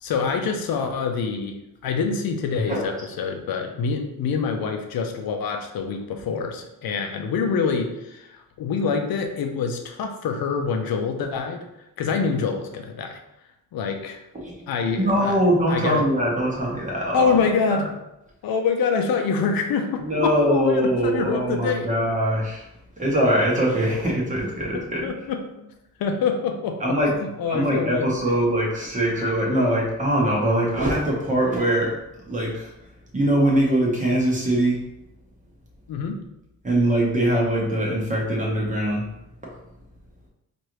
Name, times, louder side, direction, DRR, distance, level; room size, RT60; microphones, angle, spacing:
voice 1, 0.0-1.6 1.8-11.6 12.0-13.2 13.7-14.2 14.7-15.4 15.7-16.0 17.1-17.9 18.4-21.9 24.7-25.7 26.0-27.0 27.4-28.2 35.9-36.2, left 5 dB, 90° left, 4 dB, 0.6 m, -25 dB
voice 2, 14.3-14.7 15.0-17.3 17.7-17.8 20.0-22.7 23.0-25.1 26.8-27.1 27.5-32.7 33.1-34.8 36.6-39.0, right 1 dB, 20° right, -3 dB, 1.0 m, -22 dB
4.7 x 2.6 x 3.0 m, 0.88 s
wide cardioid pair, 155°, 35 cm